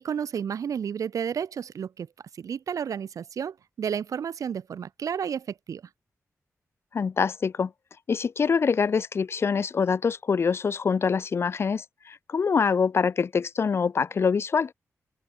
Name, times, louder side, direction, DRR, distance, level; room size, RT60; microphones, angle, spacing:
voice 1, 0.0-2.1 2.4-5.8, right 7 dB, 90° right, 3.7 m, -31 dB
voice 2, 6.9-7.7 8.1-14.7, left 5 dB, 50° left, 2.2 m, -25 dB
open air
wide cardioid pair, 175°, 6 cm